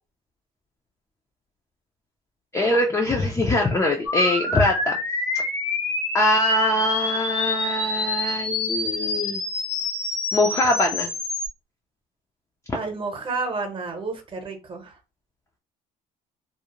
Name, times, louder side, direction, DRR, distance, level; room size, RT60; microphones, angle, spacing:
voice 1, 2.5-5.0 6.1-9.4 10.3-11.1 12.7-12.8, left 1 dB, 15° left, 0.4 m, -22 dB
sound 1, 4.1-11.5, left 3 dB, 80° left, 0.8 m, -27 dB
voice 2, 12.7-15.0, right 3 dB, 30° right, 0.9 m, -30 dB
2.3 x 2.0 x 2.9 m
cardioid pair, 110°, 17 cm